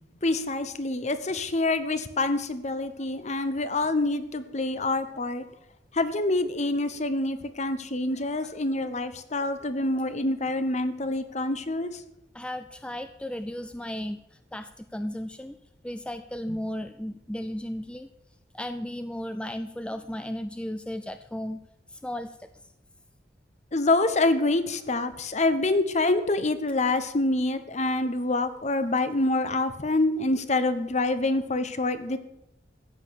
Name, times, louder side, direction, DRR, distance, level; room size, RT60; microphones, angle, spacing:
voice 1, 0.2-5.4 5.9-12.0 23.7-32.2, left 2 dB, 40° left, 11 dB, 1.0 m, -26 dB
voice 2, 12.3-15.6 15.8-18.1 18.5-21.6 21.9-22.5, left 1 dB, 5° left, 10 dB, 0.4 m, -35 dB
14.0 x 9.0 x 6.5 m, 0.82 s
head